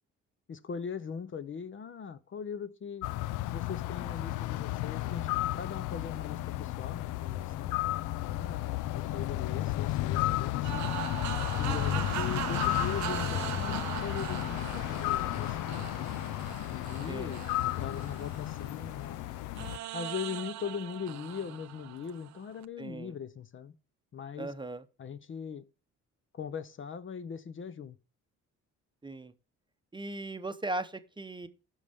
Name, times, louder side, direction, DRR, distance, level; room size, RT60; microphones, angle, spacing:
voice 1, 0.5-3.1 3.5-7.7 8.3-8.7 8.9-10.8 11.6-16.1 16.7-19.2 19.9-23.7 24.1-24.5 25.0-25.6 26.3-28.0, left 7 dB, 40° left, 0.7 m, -40 dB
sound 1, 3.0-19.8, left 15 dB, 90° left, 0.5 m, -33 dB
sound 2, 10.6-18.9 19.6-22.7, right 14 dB, 70° right, 0.5 m, -40 dB
voice 2, 11.7-12.2 17.1-17.4 22.8-23.1 24.4-24.8 29.0-29.3 29.9-31.5, right 2 dB, 15° right, 0.8 m, -38 dB
15.0 x 5.5 x 3.5 m
cardioid pair, 90°, 30 cm